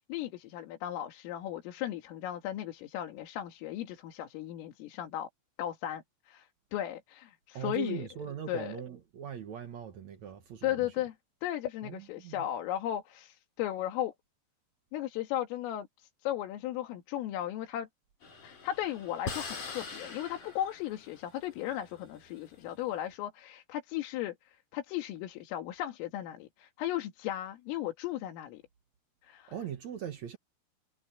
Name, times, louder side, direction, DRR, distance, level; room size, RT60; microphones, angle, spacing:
voice 1, 0.1-5.3 5.6-8.1 8.5-8.8 10.6-11.2 11.4-14.1 14.9-17.9 18.4-28.6 29.2-29.5, left 12 dB, 90° left, 4.8 m, -36 dB
voice 2, 7.5-10.9 11.8-12.4 29.5-30.4, right 9 dB, 75° right, 1.6 m, -40 dB
sound 1, 18.2-22.9, left 4 dB, 40° left, 5.3 m, -43 dB
omnidirectional pair, 5.7 m